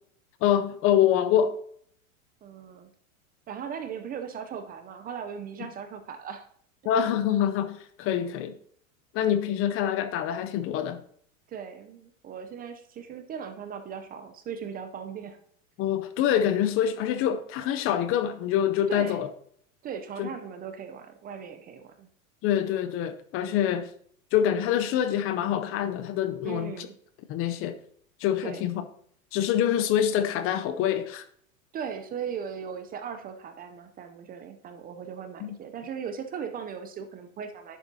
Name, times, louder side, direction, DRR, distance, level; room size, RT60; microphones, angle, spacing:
voice 1, 0.4-1.6 6.8-8.5 9.1-11.0 15.8-19.3 20.2-20.3 22.4-23.9 24.3-26.9 27.3-27.8 28.2-28.8 29.3-31.2 35.4-35.5, left 10 dB, 35° left, 0.5 m, -25 dB
voice 2, 2.4-2.9 3.5-6.5 11.5-15.4 18.9-19.3 19.8-22.1 26.4-26.9 28.4-28.6 31.7-37.8, right 7 dB, 20° right, 0.5 m, -38 dB
10.5 x 7.1 x 2.7 m
hypercardioid pair, 120°, 41 cm